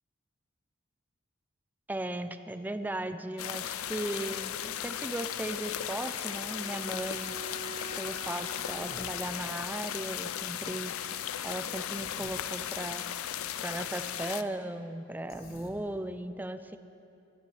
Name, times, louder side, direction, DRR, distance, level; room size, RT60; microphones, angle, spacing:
voice 1, 1.9-7.4 8.0-10.9 11.4-13.1 13.6-16.8, right 1 dB, 10° right, 9 dB, 0.4 m, -37 dB
sound 1, 3.4-14.4, left 10 dB, 80° left, 0.4 m, -36 dB
Bowed string instrument, 6.4-9.9, right 2 dB, 30° left, 2.6 m, -46 dB
Human voice, 8.6-9.2 11.9-12.4 15.3-15.8, left 1 dB, 45° left, 1.2 m, -49 dB
22.0 x 11.5 x 3.2 m, 2.7 s
head